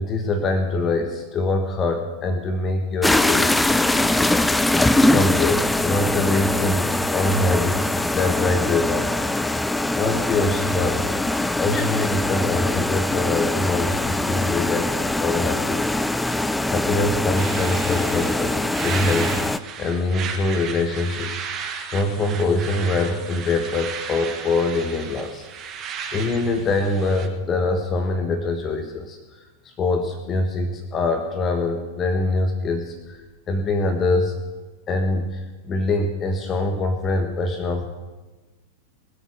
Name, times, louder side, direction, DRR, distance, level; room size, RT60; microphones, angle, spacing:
voice 1, 0.0-3.9 5.1-9.1 9.9-15.8 16.7-25.5 26.1-29.2 29.8-33.2 33.5-34.4 34.9-37.9, left 2 dB, 25° left, 6 dB, 1.4 m, -24 dB
sound 1, 3.0-19.6, left 2 dB, 5° left, 0.5 m, -22 dB
sound 2, 17.3-27.3, right 6 dB, 30° right, 1.4 m, -34 dB
20.5 x 8.3 x 6.5 m, 1.2 s
figure-of-eight pair, 90°, 0 cm